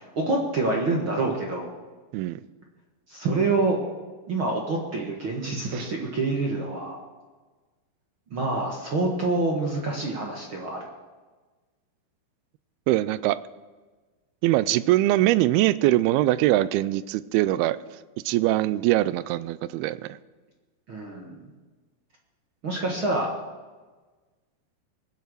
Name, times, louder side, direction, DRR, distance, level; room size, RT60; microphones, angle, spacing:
voice 1, 0.0-1.7 3.1-3.8 4.3-7.0 8.3-10.8 20.9-21.5 22.6-23.3, right 3 dB, 50° right, -1 dB, 1.6 m, -27 dB
voice 2, 12.9-13.4 14.4-17.8 18.3-20.2, right 15 dB, 80° right, 16 dB, 2.4 m, -22 dB
21.5 x 8.1 x 6.3 m, 1.3 s
omnidirectional pair, 4.5 m